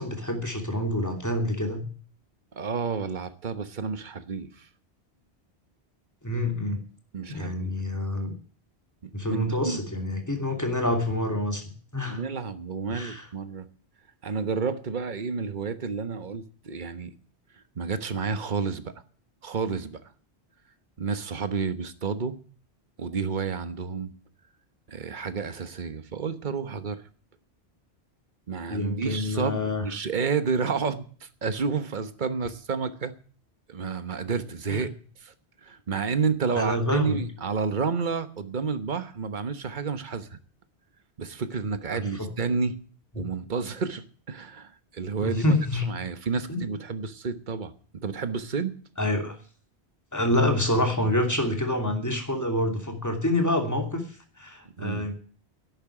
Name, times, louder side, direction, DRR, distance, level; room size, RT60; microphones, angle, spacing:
voice 1, 0.0-1.9 6.2-6.8 7.3-8.3 9.1-11.6 11.9-12.2 12.9-13.2 28.7-29.9 36.6-37.2 41.9-42.3 45.2-45.8 46.5-46.6 49.0-49.4 50.1-54.1 54.4-55.2, left 1 dB, 15° left, 3 dB, 2.9 m, -27 dB
voice 2, 2.5-4.7 7.1-7.7 9.0-9.8 10.5-10.6 12.1-13.7 14.2-17.1 17.5-18.9 19.4-20.1 21.0-22.4 23.0-24.1 24.9-27.0 28.5-33.1 33.7-35.3 35.6-40.4 41.2-42.8 43.1-45.6 45.9-48.8 54.8-55.1, right 5 dB, 45° right, 11 dB, 1.3 m, -30 dB
12.0 x 8.8 x 9.8 m, 0.42 s
omnidirectional pair, 1.1 m